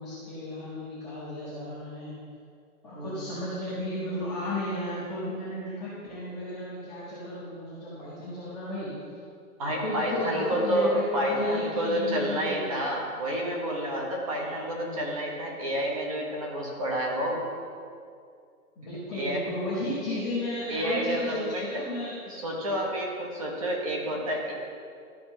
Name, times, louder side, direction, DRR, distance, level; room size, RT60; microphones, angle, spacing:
voice 1, 0.0-2.1 2.8-8.9 9.6-12.6 14.3-15.1 18.8-22.3, left 1 dB, ahead, -20 dB, 0.7 m, -34 dB
voice 2, 9.6-17.4 19.1-19.4 20.1-20.2 20.7-21.8 22.3-24.5, right 1 dB, 25° right, -1 dB, 1.1 m, -29 dB
13.0 x 5.0 x 4.4 m, 2.3 s
hypercardioid pair, 170°, 45 cm